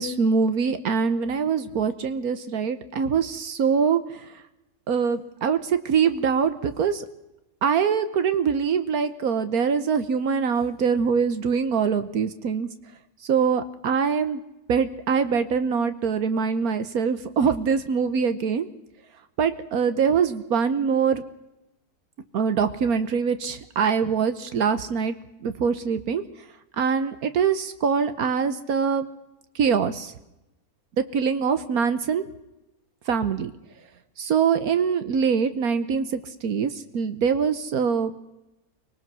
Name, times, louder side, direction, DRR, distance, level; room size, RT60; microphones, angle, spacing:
voice 1, 0.0-4.3 4.9-7.0 7.6-12.7 13.2-14.4 14.7-18.7 19.4-21.2 22.3-25.1 25.4-26.2 26.8-29.1 29.5-30.1 31.0-32.2 33.1-33.5 34.2-38.2, right 6 dB, 75° right, 10 dB, 1.4 m, -23 dB
24.5 x 18.5 x 6.2 m, 0.93 s
omnidirectional pair, 1.6 m